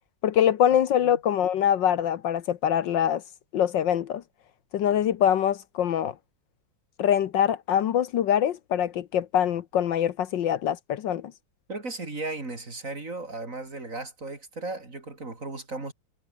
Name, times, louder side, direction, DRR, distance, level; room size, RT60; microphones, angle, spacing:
voice 1, 0.2-3.2 3.5-4.2 4.7-6.1 7.0-11.3, left 9 dB, 70° left, 1.6 m, -24 dB
voice 2, 11.7-15.9, right 2 dB, 40° right, 4.5 m, -36 dB
omnidirectional pair, 2.2 m